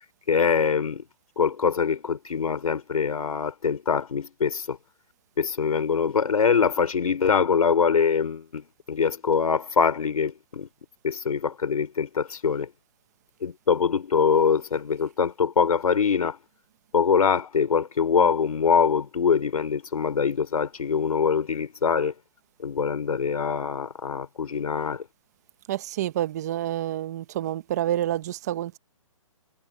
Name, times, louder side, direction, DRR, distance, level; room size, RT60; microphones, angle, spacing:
voice 1, 0.3-1.1 1.4-4.8 5.4-10.7 11.0-12.7 13.4-16.4 16.9-22.1 22.6-25.1, left 6 dB, 85° left, 4.0 m, -23 dB
voice 2, 25.7-28.8, right 12 dB, 30° right, 1.1 m, -28 dB
hypercardioid pair, 165°, 18 cm